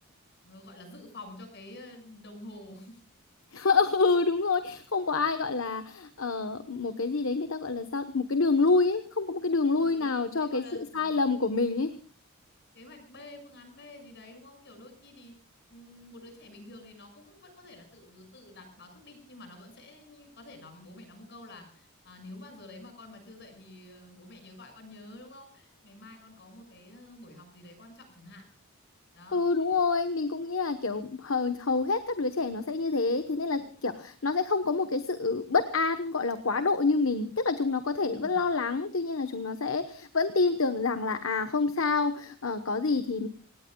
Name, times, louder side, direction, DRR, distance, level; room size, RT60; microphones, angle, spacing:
voice 1, 0.4-3.0 5.3-5.5 9.8-11.2 12.7-15.3 15.7-28.5 29.1-29.5 38.0-38.4, left 2 dB, 50° left, 5 dB, 6.4 m, -49 dB
voice 2, 3.5-11.9 29.3-43.3, left 4 dB, 65° left, 9 dB, 1.1 m, -27 dB
27.5 x 18.5 x 2.3 m, 0.41 s
head